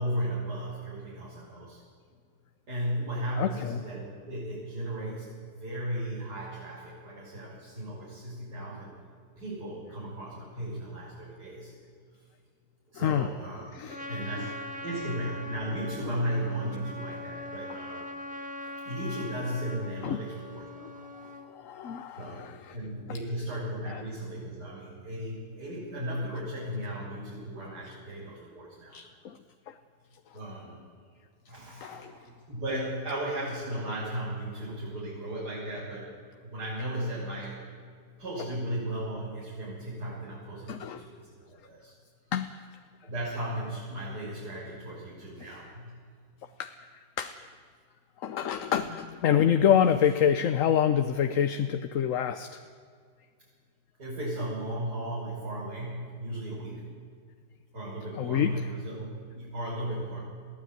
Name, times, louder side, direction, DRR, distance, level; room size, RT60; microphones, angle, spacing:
voice 1, 0.0-1.8 2.7-8.9 9.4-11.7 12.9-13.6 14.1-18.1 18.8-21.0 22.2-22.5 22.7-29.0 30.3-30.8 31.5-36.1 36.4-37.6 38.2-41.9 43.0-46.0 54.0-57.0 57.7-60.2, right 1 dB, 90° right, -11 dB, 7.7 m, -35 dB
voice 2, 3.4-3.8 13.0-13.3 13.7-14.0 20.0-20.2 21.5-22.7 23.9-24.0 28.9-29.4 29.7-29.8 31.8-32.1 40.7-41.0 42.3-42.5 46.6-46.7 47.2-47.3 48.2-52.6 58.2-58.6, left 9 dB, 60° left, 9 dB, 1.1 m, -27 dB
Trumpet, 13.9-21.5, left 1 dB, 5° right, 1.5 m, -41 dB
22.0 x 15.5 x 9.4 m, 2.1 s
omnidirectional pair, 1.7 m